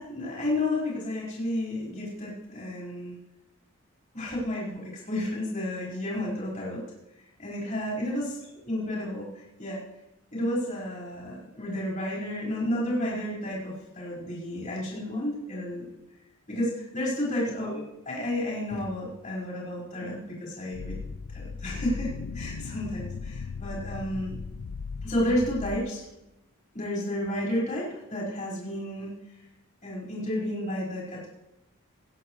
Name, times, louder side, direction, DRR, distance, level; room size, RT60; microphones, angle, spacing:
voice 1, 0.0-3.2 4.1-6.8 7.4-9.8 10.3-15.9 16.5-17.8 18.0-21.0 21.3-24.4 25.0-26.0 26.7-29.1 29.8-31.3, left 1 dB, 35° left, -5 dB, 5.0 m, -31 dB
sound 1, 20.7-25.8, left 4 dB, 80° left, 0.5 m, -37 dB
20.5 x 10.0 x 3.2 m, 0.93 s
head